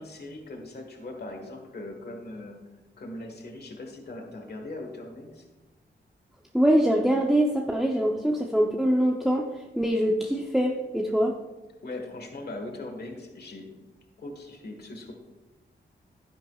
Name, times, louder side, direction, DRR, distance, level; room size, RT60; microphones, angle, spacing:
voice 1, 0.0-2.6 3.0-5.4 11.8-13.7 14.2-15.1, left 2 dB, 60° left, 3 dB, 1.6 m, -40 dB
voice 2, 6.5-11.4, equal, ahead, 0 dB, 0.7 m, -24 dB
11.5 x 10.0 x 2.4 m, 1.2 s
wide cardioid pair, 105°, 18 cm